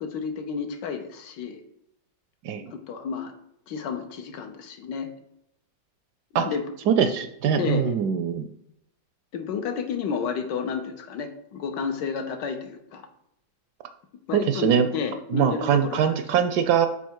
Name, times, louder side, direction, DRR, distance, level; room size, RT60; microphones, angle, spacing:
voice 1, 0.0-1.6 2.7-3.3 3.7-5.1 6.3-6.6 7.6-7.8 9.3-13.1 14.3-16.4, left 6 dB, 70° left, 6 dB, 1.4 m, -31 dB
voice 2, 6.9-8.5 14.3-14.9 15.3-16.9, right 8 dB, 75° right, 8 dB, 1.0 m, -22 dB
5.6 x 4.7 x 4.6 m, 0.79 s
omnidirectional pair, 2.0 m